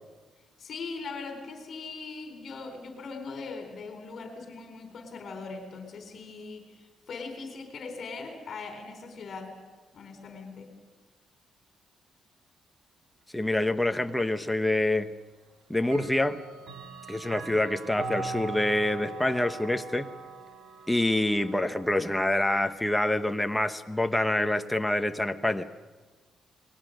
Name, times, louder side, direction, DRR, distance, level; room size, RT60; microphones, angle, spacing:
voice 1, 0.6-9.6 9.9-10.7, left 4 dB, 50° left, 5 dB, 4.0 m, -40 dB
voice 2, 13.3-15.1 15.7-16.4 17.1-20.1 20.9-25.6, left 1 dB, 5° left, 7 dB, 1.0 m, -26 dB
Clock, 14.5-14.6 15.8-22.6, right 4 dB, 75° right, 2.9 m, -41 dB
28.5 x 20.5 x 6.5 m, 1.3 s
cardioid pair, 155°, 0 cm